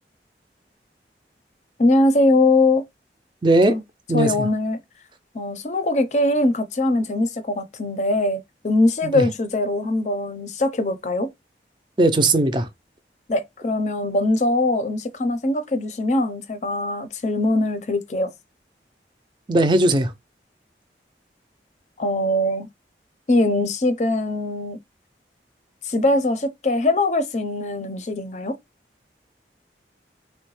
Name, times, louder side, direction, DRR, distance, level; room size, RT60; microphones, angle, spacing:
voice 1, 1.8-2.8 3.7-3.8 4.1-4.8 5.3-11.3 13.3-18.3 22.0-22.7 23.3-24.8 25.8-28.5, left 2 dB, 40° left, 0.5 m, -21 dB
voice 2, 3.4-3.8 4.1-4.3 9.0-9.2 12.0-12.7 19.5-20.1, right 2 dB, 25° right, 0.4 m, -18 dB
3.7 x 2.1 x 3.0 m
head